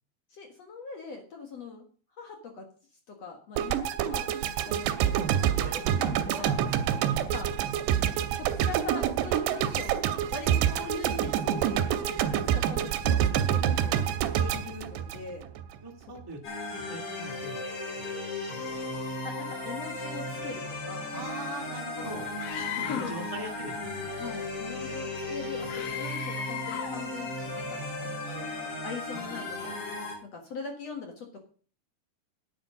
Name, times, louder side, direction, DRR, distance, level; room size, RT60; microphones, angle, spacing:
voice 1, 0.3-1.8 2.2-2.7 3.1-7.5 8.0-10.0 10.3-15.5 19.2-21.1 22.5-23.1 24.2-28.5 28.8-29.8 30.3-31.4, left 5 dB, 50° left, 3 dB, 2.1 m, -41 dB
sound 1, 3.6-15.8, right 10 dB, 90° right, 2.9 m, -27 dB
voice 2, 15.8-16.4 16.7-18.3 21.1-22.3 22.7-24.2, right 2 dB, 10° right, 1 dB, 1.2 m, -42 dB
sound 2, 16.4-30.1, left 2 dB, 35° left, 5.2 m, -36 dB
Screaming, 22.4-23.3 25.7-27.0, left 9 dB, 85° left, 3.5 m, -36 dB
10.5 x 9.9 x 5.1 m, 0.41 s
omnidirectional pair, 4.7 m